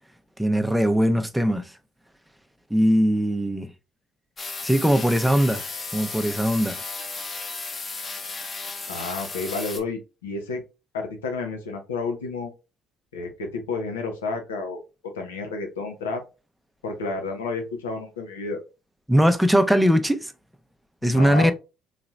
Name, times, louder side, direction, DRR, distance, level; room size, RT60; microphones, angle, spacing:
voice 1, 0.4-1.7 2.7-3.7 4.6-5.6 5.9-6.8 19.1-20.3 21.0-21.5, equal, 5° right, 0.6 m, -20 dB
sound 1, 4.4-9.8, left 3 dB, 35° left, 0.9 m, -34 dB
voice 2, 8.9-10.6 10.9-12.5 13.1-14.8 15.1-16.2 16.8-18.6 21.0-21.5, left 3 dB, 90° left, 0.8 m, -30 dB
4.1 x 2.9 x 2.4 m
hypercardioid pair, 60°, 0 cm